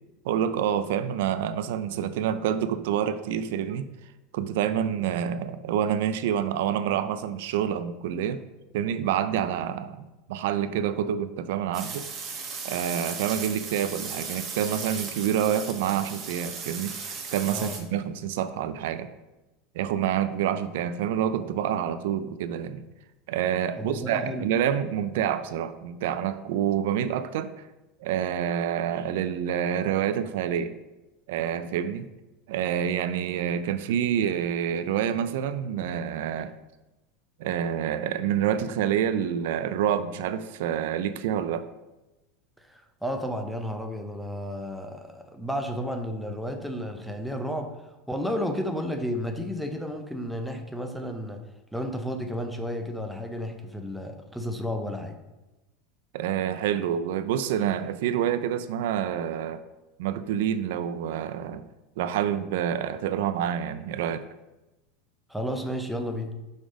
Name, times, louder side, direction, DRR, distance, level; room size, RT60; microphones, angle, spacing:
voice 1, 0.2-3.9 4.3-8.4 8.7-10.0 10.3-12.1 12.6-19.1 19.8-22.9 23.3-27.5 28.0-30.7 31.3-32.1 32.5-36.5 37.4-41.7 56.1-59.6 60.0-61.6 62.0-64.2, right 9 dB, 75° right, 12 dB, 0.3 m, -27 dB
sound 1, 11.7-17.8, right 5 dB, 30° right, 0.9 m, -36 dB
voice 2, 23.8-24.5 42.6-47.7 48.1-51.4 51.7-55.2 65.3-66.3, equal, ahead, 4 dB, 0.5 m, -32 dB
4.8 x 4.0 x 5.1 m, 1.0 s
supercardioid pair, 150°, 0 cm